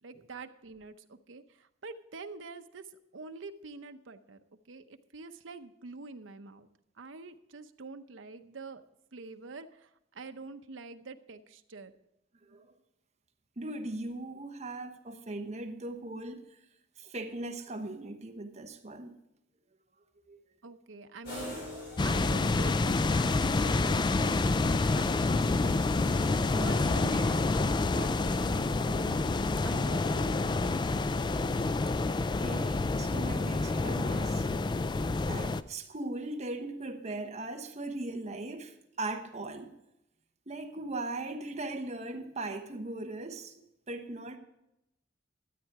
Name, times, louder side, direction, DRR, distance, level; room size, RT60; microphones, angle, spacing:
voice 1, 0.0-2.9 3.1-4.4 4.7-6.7 7.0-8.8 9.1-11.9 20.6-21.6 22.0-25.7 26.6-27.4 27.8-29.2 29.6-30.8, right 3 dB, 90° right, 0.8 m, -46 dB
voice 2, 13.6-16.4 17.0-19.1 20.3-20.4 32.4-34.5 35.3-39.7 40.5-44.4, right 2 dB, 35° right, 1.1 m, -39 dB
sound 1, 21.2-27.3, left 1 dB, 60° left, 5.0 m, -46 dB
sound 2, 22.0-35.6, left 3 dB, 25° left, 0.3 m, -28 dB
13.0 x 9.1 x 4.8 m
head